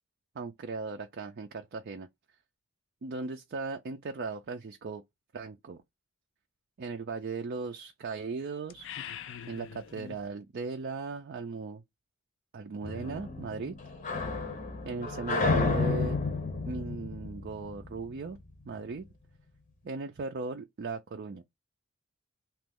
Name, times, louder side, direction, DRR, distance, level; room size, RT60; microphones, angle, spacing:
voice 1, 0.4-2.1 3.0-5.0 5.3-5.8 6.8-8.9 9.5-11.8 12.5-13.7 14.8-16.2 16.7-18.4 18.6-19.0 19.8-21.4, right 4 dB, 50° right, 0.4 m, -37 dB
sound 1, 8.7-10.3, left 8 dB, 65° left, 0.4 m, -43 dB
sound 2, 12.8-18.3, left 3 dB, 40° left, 0.8 m, -31 dB
3.0 x 2.4 x 3.6 m
head